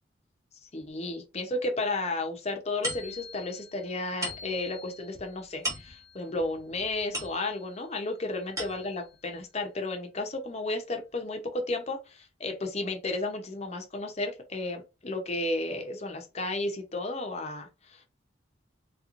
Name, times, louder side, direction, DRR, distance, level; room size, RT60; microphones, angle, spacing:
voice 1, 0.7-18.1, left 2 dB, 35° left, 4 dB, 0.8 m, -33 dB
sound 1, 2.8-7.8 8.3-9.2, equal, 15° right, 1.2 m, -39 dB
3.4 x 3.0 x 2.5 m, 0.27 s
head